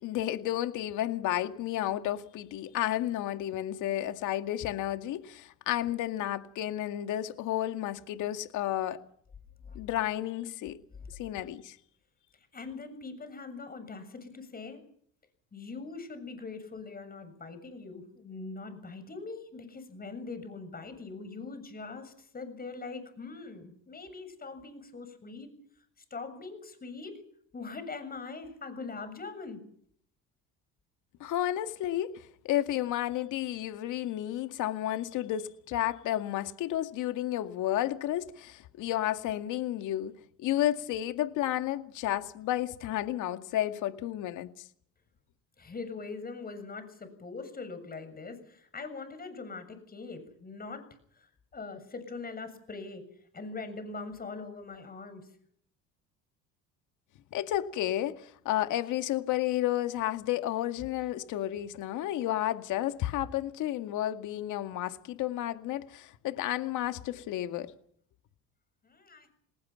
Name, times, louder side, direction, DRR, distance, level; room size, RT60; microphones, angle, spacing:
voice 1, 0.0-9.0 9.8-10.8 11.2-11.8 31.2-40.1 40.4-44.5 57.3-67.7, left 13 dB, 70° left, 2.1 m, -32 dB
voice 2, 12.5-14.8 15.5-25.5 26.1-27.1 27.5-29.6 45.6-50.8 51.1-53.0 53.3-55.3 68.8-69.3, left 4 dB, 30° left, 7.1 m, -42 dB
29.0 x 19.0 x 5.9 m
cardioid pair, 100°, 32 cm